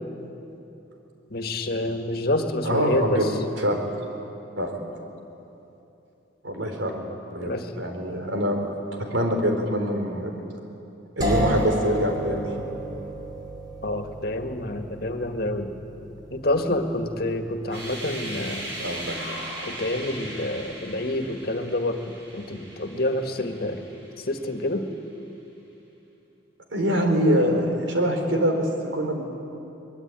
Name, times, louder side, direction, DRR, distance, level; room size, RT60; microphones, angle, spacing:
voice 1, 1.3-3.2 7.4-7.7 13.8-15.7 16.3-18.7 19.3-19.4 19.6-22.0 22.3-23.8 24.3-24.9, left 1 dB, 55° left, 5 dB, 1.8 m, -27 dB
voice 2, 2.6-3.3 3.6-3.8 4.6-4.8 6.4-8.6 9.0-10.4 11.2-12.5 18.8-19.2 26.7-29.2, equal, 85° right, 3 dB, 4.0 m, -24 dB
sound 1, 11.2-21.0, right 1 dB, 20° right, 3.8 m, -34 dB
sound 2, 17.6-24.5, right 1 dB, 70° right, 6.6 m, -38 dB
23.0 x 21.0 x 9.1 m, 2.9 s
head